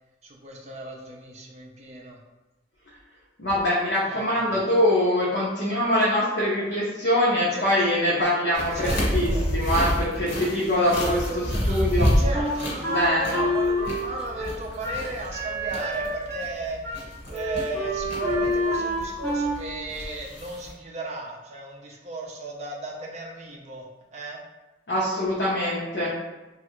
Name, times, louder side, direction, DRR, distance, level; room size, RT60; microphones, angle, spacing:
voice 1, 0.2-2.2 4.0-4.2 7.5-7.6 8.7-9.4 10.2-24.4, right 2 dB, 35° right, -1 dB, 0.5 m, -35 dB
voice 2, 3.4-12.1 12.8-13.4 24.9-26.1, left 1 dB, 60° left, -7 dB, 0.7 m, -24 dB
sound 1, 8.5-20.7, equal, 90° left, 1.2 m, -29 dB
Wind instrument woodwind instrument, 12.3-16.6 16.8-17.0 17.3-19.6, equal, 10° left, 0.5 m, -28 dB
3.2 x 2.4 x 3.0 m, 1.1 s
head